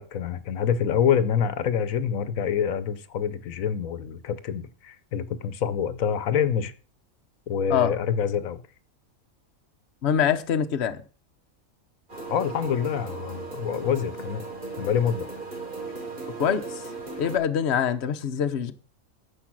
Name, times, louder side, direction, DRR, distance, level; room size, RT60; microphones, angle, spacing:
voice 1, 0.0-6.7 7.5-8.6 12.3-14.5 14.8-15.3, left 8 dB, 85° left, 1.2 m, -26 dB
voice 2, 10.0-11.0 16.4-16.8 17.2-18.7, left 8 dB, 55° left, 1.1 m, -24 dB
sound 1, 12.1-17.4, right 3 dB, 40° right, 3.2 m, -37 dB
10.0 x 7.3 x 6.1 m
omnidirectional pair, 1.4 m